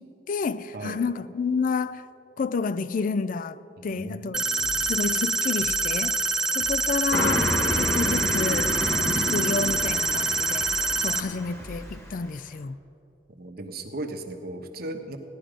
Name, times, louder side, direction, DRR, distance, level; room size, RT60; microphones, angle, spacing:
voice 1, 0.0-2.1 2.4-4.4 4.8-6.2 6.5-10.7 11.0-12.8, left 4 dB, 50° left, 0.4 m, -30 dB
voice 2, 3.8-4.9 13.3-15.2, right 2 dB, 60° right, 1.1 m, -37 dB
sound 1, 4.3-11.2, right 3 dB, 5° right, 0.5 m, -26 dB
sound 2, 4.6-5.0 5.6-6.0 6.6-7.0 7.6-8.0 8.6-9.0 9.6-10.0 10.6-11.0 11.6-12.0, right 1 dB, 30° right, 1.0 m, -42 dB
Car passing by, 7.1-12.1, equal, 15° left, 1.5 m, -29 dB
16.0 x 11.0 x 5.1 m
head